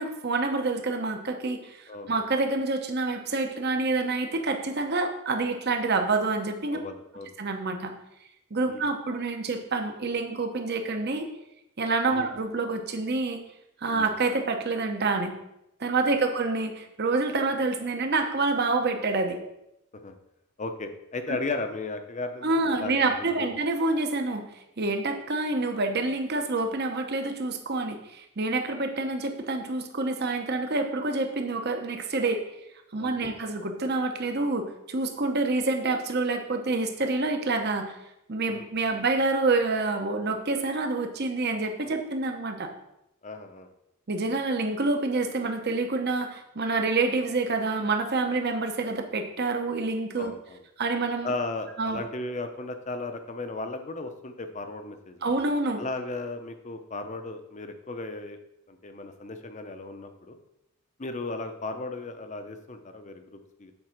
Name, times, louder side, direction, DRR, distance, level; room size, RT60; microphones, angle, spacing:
voice 1, 0.0-6.8 7.4-7.9 8.5-11.3 11.8-13.4 13.8-15.4 15.8-19.4 22.4-24.5 24.8-32.4 32.9-37.9 38.3-42.7 44.1-50.3 50.8-51.3 51.8-52.0 55.2-55.8, right 3 dB, 50° right, 5 dB, 0.9 m, -27 dB
voice 2, 1.9-2.3 6.7-7.3 8.7-8.9 12.1-12.3 13.8-14.0 20.0-20.2 20.6-23.5 33.0-33.3 38.5-38.7 43.2-43.7 50.2-50.6 51.2-55.2 55.8-58.4 58.7-60.4 61.0-63.7, left 2 dB, 35° left, 8 dB, 0.7 m, -36 dB
7.8 x 4.7 x 5.9 m, 0.85 s
head